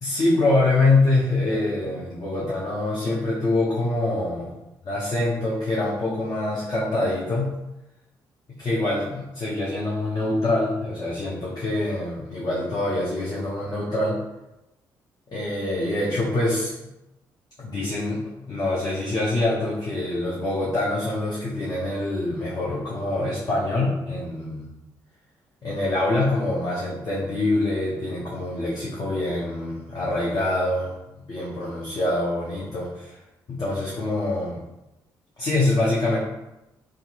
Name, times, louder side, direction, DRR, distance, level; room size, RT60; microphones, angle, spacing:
voice 1, 0.0-4.5 4.9-7.5 8.6-14.2 15.3-16.7 17.6-24.6 25.6-31.0 31.3-33.2 33.5-34.6 35.4-36.2, left 2 dB, 40° left, -6 dB, 0.7 m, -25 dB
2.6 x 2.4 x 2.5 m, 0.93 s
hypercardioid pair, 45°, 10 cm